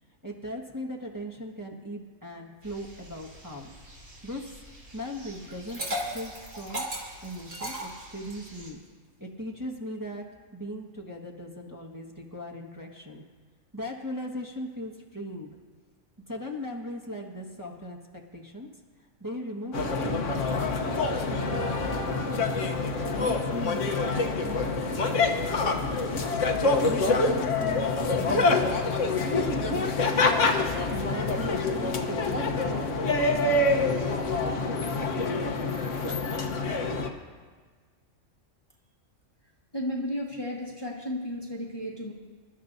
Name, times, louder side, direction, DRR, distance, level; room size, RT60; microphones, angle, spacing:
voice 1, 0.2-3.7 4.2-4.5 4.9-5.8 6.1-6.8 7.2-8.8 9.2-10.2 10.5-13.2 13.7-15.5 16.3-18.7 19.2-20.9 21.3-26.0 26.6-30.4 30.9-33.7, equal, 15° right, -2 dB, 1.5 m, -39 dB
sound 1, 2.6-8.7, equal, 80° right, 3.7 m, -50 dB
Liquid, 5.5-8.5, equal, 50° right, 3.3 m, -35 dB
sound 2, 19.7-37.1, left 3 dB, 70° left, 1.4 m, -26 dB
voice 2, 39.7-42.1, left 1 dB, 20° left, -2 dB, 1.3 m, -33 dB
27.5 x 12.5 x 2.7 m, 1.5 s
omnidirectional pair, 1.3 m